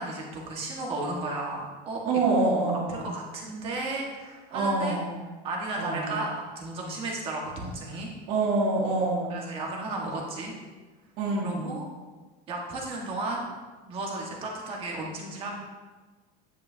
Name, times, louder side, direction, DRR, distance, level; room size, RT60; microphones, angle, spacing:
voice 1, 0.0-2.0 2.9-5.0 5.4-8.1 9.3-10.5 11.4-11.9 12.5-13.5 13.9-15.5, right 2 dB, 30° right, -1 dB, 1.6 m, -34 dB
voice 2, 2.0-3.1 4.5-5.2 5.8-6.2 8.3-9.4 11.2-11.8, right 3 dB, 45° right, -7 dB, 2.1 m, -26 dB
9.7 x 8.4 x 2.8 m, 1.3 s
cardioid pair, 175°, 19 cm